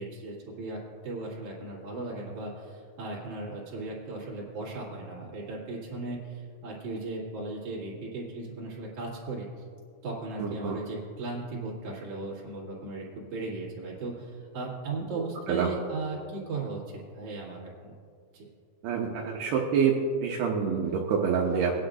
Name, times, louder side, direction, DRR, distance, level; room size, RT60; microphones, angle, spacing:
voice 1, 0.0-9.5 10.0-17.9 18.3-18.4, right 3 dB, 50° right, -6 dB, 2.7 m, -37 dB
voice 2, 10.4-10.8 15.5-15.7 18.8-19.9 20.2-21.9, right 6 dB, 80° right, -2 dB, 2.4 m, -27 dB
22.5 x 9.8 x 2.6 m, 2.3 s
omnidirectional pair, 5.8 m